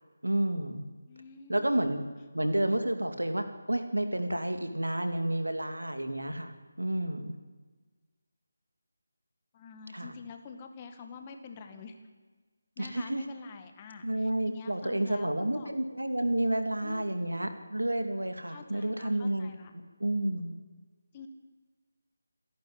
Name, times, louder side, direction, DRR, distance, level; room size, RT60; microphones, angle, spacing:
voice 1, 0.2-0.9 1.5-2.0 2.3-6.5 6.8-7.4 9.9-10.1 12.8-13.2 14.0-19.5 20.0-20.5, right 1 dB, 85° right, 7 dB, 2.6 m, -30 dB
voice 2, 1.1-2.1 9.5-12.0 12.8-15.7 16.8-17.6 18.5-19.7 21.1-21.3, left 5 dB, 20° left, 6 dB, 1.9 m, -47 dB
27.5 x 11.5 x 9.7 m, 1.4 s
figure-of-eight pair, 160°, 0 cm